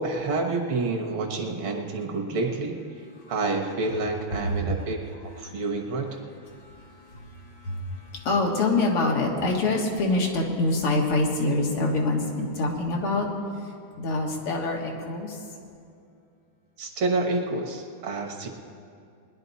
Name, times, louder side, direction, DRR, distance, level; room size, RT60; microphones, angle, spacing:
voice 1, 0.0-2.8 3.3-6.2 16.8-18.5, right 3 dB, 65° right, 2 dB, 2.0 m, -28 dB
voice 2, 6.6-13.3 14.0-15.4, left 2 dB, 85° left, -1 dB, 2.6 m, -26 dB
20.5 x 11.0 x 4.1 m, 2.5 s
omnidirectional pair, 2.4 m